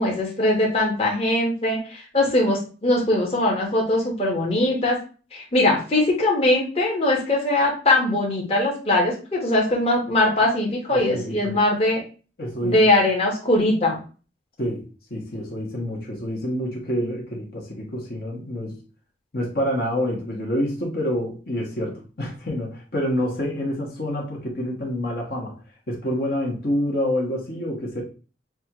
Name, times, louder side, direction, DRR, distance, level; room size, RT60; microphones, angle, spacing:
voice 1, 0.0-5.0 5.3-12.0 12.6-14.0, left 1 dB, 30° left, -3 dB, 1.2 m, -21 dB
voice 2, 10.9-11.6 12.4-12.8 14.6-18.8 19.3-25.5 25.9-28.0, equal, 50° left, -2 dB, 1.2 m, -27 dB
6.2 x 2.4 x 2.9 m, 0.36 s
head